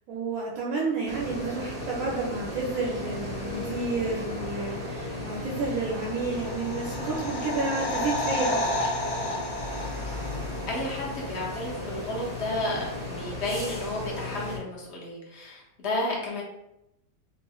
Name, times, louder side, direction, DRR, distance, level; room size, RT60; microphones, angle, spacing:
voice 1, 0.1-8.9, right 3 dB, 75° right, -4 dB, 1.0 m, -31 dB
sound 1, 1.0-14.6, left 1 dB, 5° left, 1.1 m, -35 dB
sound 2, 6.0-10.8 11.1-11.2, left 1 dB, 80° left, 1.1 m, -31 dB
voice 2, 10.7-16.4, left 1 dB, 55° left, -4 dB, 0.9 m, -32 dB
3.0 x 2.7 x 2.2 m, 0.86 s
omnidirectional pair, 1.6 m